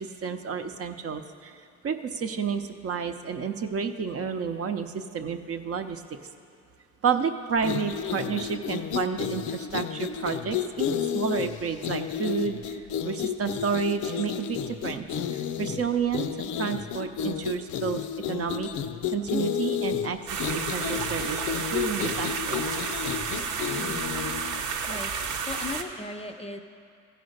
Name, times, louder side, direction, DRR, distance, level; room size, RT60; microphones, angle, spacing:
voice 1, 0.0-1.6 1.8-6.0 7.0-12.8 13.0-18.0 18.3-18.7 19.1-20.2 20.5-22.6, right 6 dB, 50° right, 7 dB, 0.7 m, -30 dB
sound 1, 7.6-24.6, left 8 dB, 75° left, 0.5 m, -31 dB
sound 2, 20.3-25.8, right 5 dB, 75° right, 0.9 m, -31 dB
voice 2, 23.7-24.1 24.9-26.6, left 2 dB, 20° left, 7 dB, 0.5 m, -38 dB
14.5 x 5.0 x 6.5 m, 2.6 s
cardioid pair, 90°, 30 cm